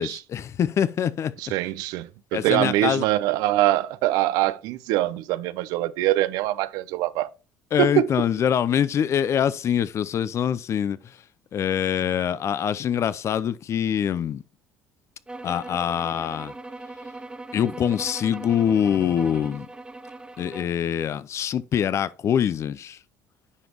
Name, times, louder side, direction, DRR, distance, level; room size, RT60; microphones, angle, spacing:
voice 1, 0.0-1.3 2.3-3.1 7.7-11.2 11.5-14.4 15.4-16.5 17.5-19.7 20.4-23.0, left 9 dB, 50° left, 0.5 m, -24 dB
voice 2, 1.5-7.3 7.8-8.1, right 15 dB, 75° right, 0.5 m, -23 dB
sound 1, 15.3-20.8, right 2 dB, 15° right, 0.7 m, -40 dB
9.7 x 5.1 x 3.0 m
supercardioid pair, 75°, 6 cm